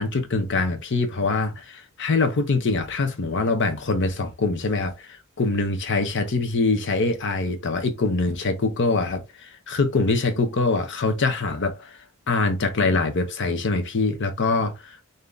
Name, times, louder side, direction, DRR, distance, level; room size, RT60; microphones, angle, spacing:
voice 1, 0.0-12.0 12.3-15.0, left 3 dB, 60° left, 0.7 m, -24 dB
3.8 x 2.7 x 3.3 m
head